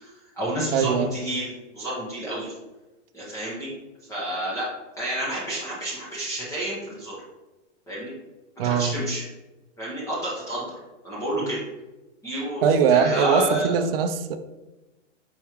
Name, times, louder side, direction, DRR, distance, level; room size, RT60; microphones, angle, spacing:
voice 1, 0.0-2.5 3.1-3.7 4.1-4.7 5.0-7.2 7.9-8.1 8.6-9.2 9.8-10.8 11.0-11.6 12.2-12.6 12.9-13.8, right 1 dB, 10° left, -8 dB, 0.9 m, -29 dB
voice 2, 0.7-1.1 8.6-8.9 12.6-14.4, right 7 dB, 50° right, 8 dB, 0.5 m, -21 dB
4.7 x 3.5 x 3.0 m, 1.1 s
hypercardioid pair, 150°, 36 cm